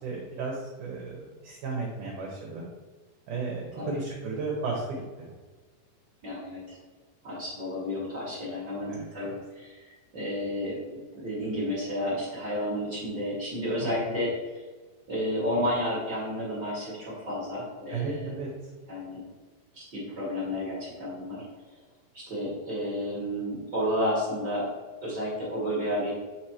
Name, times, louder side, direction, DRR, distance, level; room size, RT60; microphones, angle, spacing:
voice 1, 0.0-2.7 3.3-5.3 8.9-9.1 14.1-14.2 17.9-18.5, right 4 dB, 65° right, -2 dB, 2.2 m, -34 dB
voice 2, 6.2-6.8 7.2-14.3 15.1-18.4 18.9-19.2 19.7-21.4 22.1-24.7 25.0-26.1, equal, 40° right, -7 dB, 1.8 m, -31 dB
8.3 x 3.2 x 4.4 m, 1.3 s
omnidirectional pair, 4.6 m